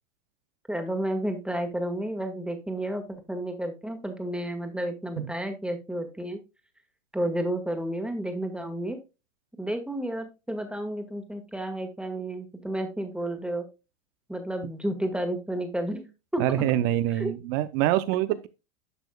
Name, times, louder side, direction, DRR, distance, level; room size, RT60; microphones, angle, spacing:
voice 1, 0.7-3.0 3.3-6.4 7.1-9.0 9.6-13.6 14.3-16.0 16.3-16.7 17.2-17.3, right 1 dB, ahead, 1.5 m, -31 dB
voice 2, 16.4-18.5, right 13 dB, 40° right, 0.6 m, -25 dB
11.0 x 6.2 x 2.2 m
hypercardioid pair, 110°, 41 cm